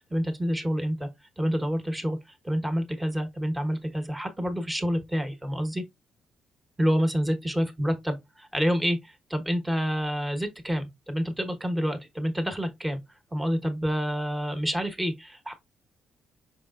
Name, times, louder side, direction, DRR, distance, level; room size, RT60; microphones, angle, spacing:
voice 1, 0.1-1.1 1.4-2.2 2.4-5.8 6.8-13.0 13.3-15.5, equal, 10° right, 1.2 m, -28 dB
5.7 x 3.5 x 2.4 m
cardioid pair, 90°, 0 cm